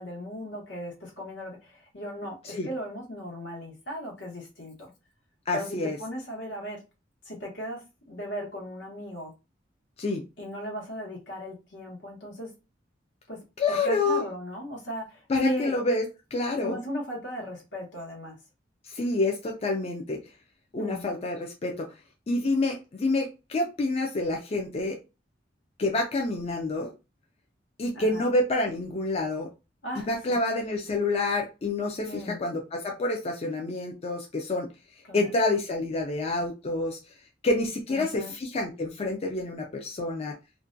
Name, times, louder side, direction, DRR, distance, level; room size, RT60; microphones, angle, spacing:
voice 1, 0.0-4.9 5.5-6.8 7.2-9.3 10.4-12.5 13.3-13.4 13.7-15.8 16.6-18.4 20.8-21.1 27.9-28.2 29.8-30.1 32.1-32.4 35.1-35.3 37.9-38.3, equal, 75° left, -1 dB, 1.1 m, -37 dB
voice 2, 5.5-6.0 10.0-10.2 13.6-14.2 15.3-16.0 16.3-16.8 18.8-20.2 20.7-21.9 22.3-25.0 25.8-26.9 27.8-29.5 30.1-34.7 35.1-37.0 37.4-40.3, left 2 dB, 35° left, 1 dB, 0.4 m, -28 dB
2.5 x 2.1 x 2.5 m, 0.28 s
head